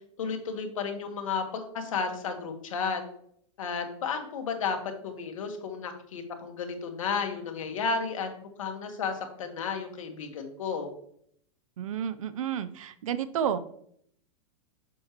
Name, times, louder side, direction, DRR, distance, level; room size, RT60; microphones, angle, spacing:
voice 1, 0.2-3.0 3.6-8.3 8.6-10.9, left 5 dB, 90° left, 5 dB, 1.5 m, -33 dB
voice 2, 11.8-13.6, right 9 dB, 85° right, 13 dB, 0.6 m, -31 dB
6.5 x 6.2 x 3.0 m, 0.66 s
supercardioid pair, 145°, 17 cm